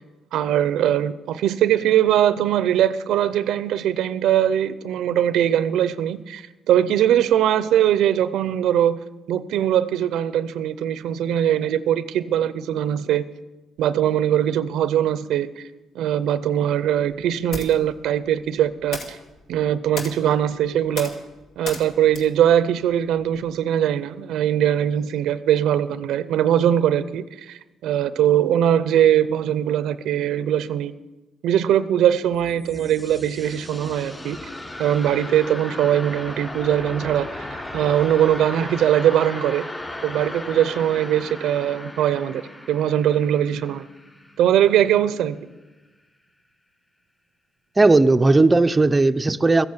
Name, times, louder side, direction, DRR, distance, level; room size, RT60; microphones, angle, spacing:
voice 1, 0.3-9.0 9.3-13.3 13.8-15.7 15.9-19.2 19.5-21.1 21.6-30.9 31.4-34.4 34.8-37.5 37.7-39.6 40.0-42.4 42.7-43.9 44.4-45.4, right 10 dB, 80° right, 0.5 m, -21 dB
sound 1, 17.1-23.6, left 3 dB, 70° left, 2.2 m, -39 dB
sound 2, 32.3-45.0, left 1 dB, 20° left, 3.2 m, -36 dB
voice 2, 47.8-49.7, right 2 dB, 20° right, 0.5 m, -16 dB
14.5 x 8.7 x 8.0 m
cardioid pair, 90°, 0 cm